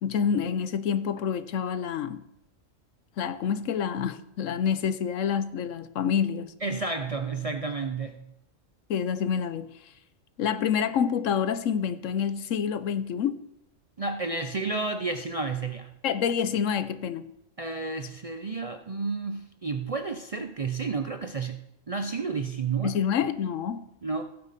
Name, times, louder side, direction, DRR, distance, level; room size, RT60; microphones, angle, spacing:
voice 1, 0.0-2.2 3.2-6.5 8.9-9.7 10.4-13.4 16.0-17.3 22.8-23.9, left 7 dB, 80° left, 1.1 m, -27 dB
voice 2, 6.6-8.3 14.0-15.9 17.6-23.0 24.0-24.2, right 4 dB, 40° right, 0.5 m, -31 dB
15.5 x 9.0 x 4.1 m
omnidirectional pair, 1.3 m